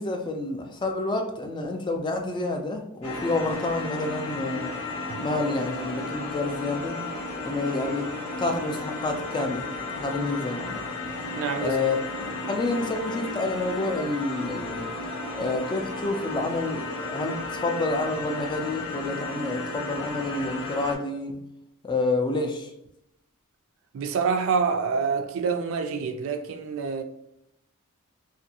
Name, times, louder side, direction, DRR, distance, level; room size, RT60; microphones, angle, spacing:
voice 1, 0.0-4.7 5.2-7.0 7.4-8.1 8.4-9.7 9.9-10.8 11.6-14.9 15.3-21.3 21.8-22.7, left 2 dB, 20° left, 0.3 m, -29 dB
sound 1, 3.0-21.0, left 2 dB, 75° left, 0.7 m, -33 dB
voice 2, 11.4-11.8 23.9-27.0, right 5 dB, 65° right, 0.3 m, -27 dB
2.6 x 2.4 x 2.7 m
head